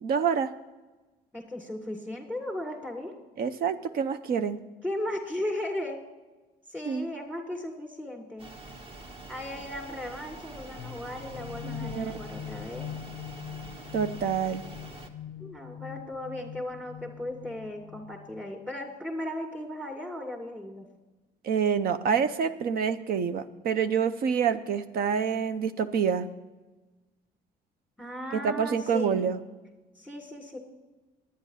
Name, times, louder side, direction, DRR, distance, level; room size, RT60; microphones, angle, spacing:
voice 1, 0.0-0.5 3.4-4.6 6.9-7.1 11.6-12.2 13.9-14.6 21.4-26.3 28.3-29.4, right 7 dB, 60° right, 11 dB, 0.7 m, -27 dB
voice 2, 1.3-3.2 4.8-6.0 6.7-8.5 9.3-12.9 15.4-20.9 28.0-29.3 29.9-30.6, left 1 dB, 5° right, -1 dB, 2.3 m, -36 dB
sound 1, 8.4-15.1, right 2 dB, 35° right, 1.4 m, -45 dB
sound 2, 10.8-18.5, left 10 dB, 60° left, 0.4 m, -42 dB
10.5 x 9.6 x 5.7 m, 1.2 s
cardioid pair, 110°, 17 cm